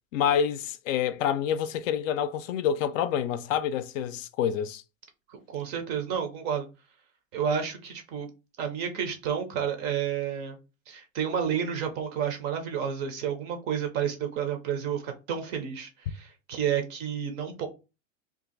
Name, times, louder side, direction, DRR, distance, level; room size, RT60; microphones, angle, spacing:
voice 1, 0.1-4.8, left 8 dB, 70° left, 0.5 m, -27 dB
voice 2, 5.3-6.7 7.3-8.3 8.6-10.6 10.9-17.7, right 8 dB, 25° right, 0.4 m, -30 dB
2.6 x 2.4 x 3.8 m
supercardioid pair, 150°, 40 cm